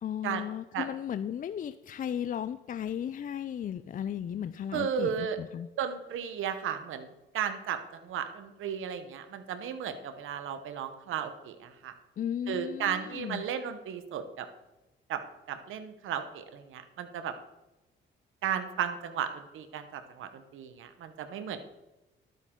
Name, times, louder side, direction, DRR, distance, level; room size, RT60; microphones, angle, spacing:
voice 1, 0.0-5.7 12.2-13.4, left 9 dB, 40° left, 13 dB, 0.4 m, -35 dB
voice 2, 4.7-5.4 5.8-7.1 7.3-11.9 12.5-14.5 15.1-15.2 15.5-17.3 18.4-21.6, right 8 dB, 75° right, 9 dB, 1.0 m, -34 dB
12.0 x 9.2 x 3.8 m, 1.0 s
cardioid pair, 95°, 21 cm